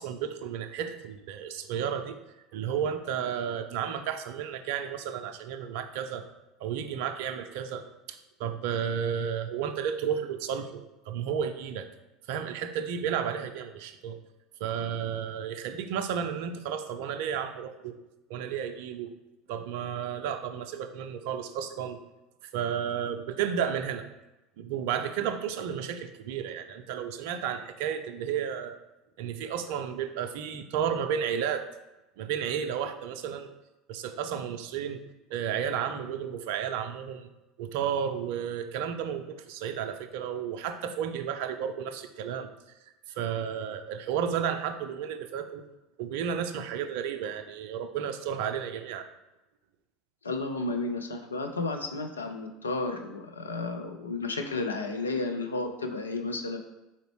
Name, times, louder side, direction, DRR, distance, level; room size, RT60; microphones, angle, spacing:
voice 1, 0.0-2.2 2.5-6.2 6.6-11.9 12.3-14.2 14.6-18.0 18.3-19.1 19.5-22.0 22.4-24.0 24.6-28.8 29.2-31.7 32.2-33.5 33.9-35.0 35.3-37.3 37.6-42.5 43.1-45.6 46.0-49.1, right 8 dB, 60° right, 9 dB, 0.4 m, -32 dB
voice 2, 50.2-56.6, left 3 dB, 80° left, 4 dB, 0.4 m, -32 dB
4.2 x 3.8 x 3.1 m, 0.97 s
figure-of-eight pair, 70°, 0 cm